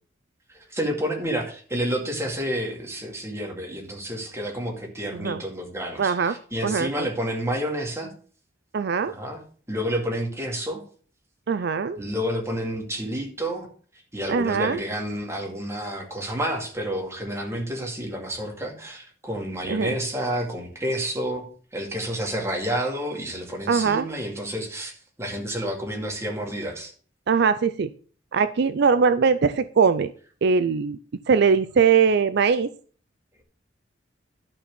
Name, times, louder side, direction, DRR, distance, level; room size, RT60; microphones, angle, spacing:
voice 1, 0.5-8.1 9.1-9.4 9.7-10.8 12.0-13.7 14.1-21.5 21.7-26.9, equal, 15° right, 1 dB, 2.3 m, -29 dB
voice 2, 6.0-6.3 6.6-7.1 8.7-9.1 11.5-12.0 14.3-14.8 19.7-19.9 23.7-24.1 27.3-27.9 28.3-30.1 30.4-31.0 31.3-32.7, right 5 dB, 60° right, 13 dB, 0.4 m, -21 dB
12.0 x 4.3 x 6.7 m, 0.43 s
head